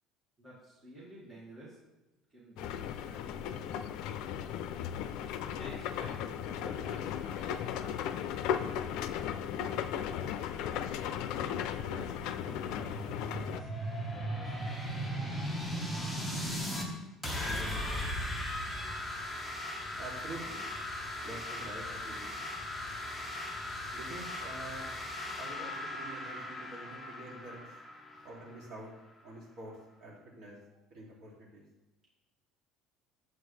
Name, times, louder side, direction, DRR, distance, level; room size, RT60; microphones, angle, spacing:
voice 1, 0.4-1.8 2.3-4.7 5.4-9.1 11.7-15.3 17.3-17.8 28.1-28.3, right 1 dB, 15° right, -7 dB, 2.0 m, -52 dB
sound 1, 2.6-13.6, left 9 dB, 65° left, 0.5 m, -36 dB
sound 2, 12.5-16.9 17.2-28.8, equal, ahead, 1.3 m, -38 dB
voice 2, 20.0-20.6 21.2-22.4 23.9-24.9 25.4-27.6 28.2-28.9 29.2-29.7 30.0-30.6 30.9-31.6, right 2 dB, 45° right, -4 dB, 2.8 m, -46 dB
9.3 x 7.7 x 3.3 m, 1.0 s
cardioid pair, 160°, 0 cm